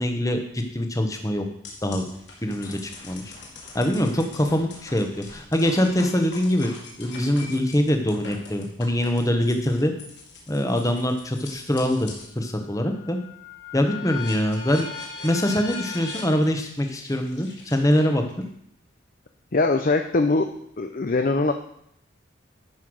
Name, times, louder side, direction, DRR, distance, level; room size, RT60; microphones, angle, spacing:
voice 1, 0.0-1.5 1.8-2.0 2.4-3.2 3.7-6.7 7.0-9.9 10.5-13.2 13.7-14.9 15.2-18.2, equal, 15° left, 5 dB, 1.0 m, -23 dB
sound 1, 1.6-12.3 12.8-18.4, left 4 dB, 60° left, 2.4 m, -41 dB
voice 2, 19.5-20.5 20.8-21.5, left 3 dB, 45° left, 6 dB, 0.6 m, -21 dB
11.0 x 5.7 x 6.3 m, 0.72 s
head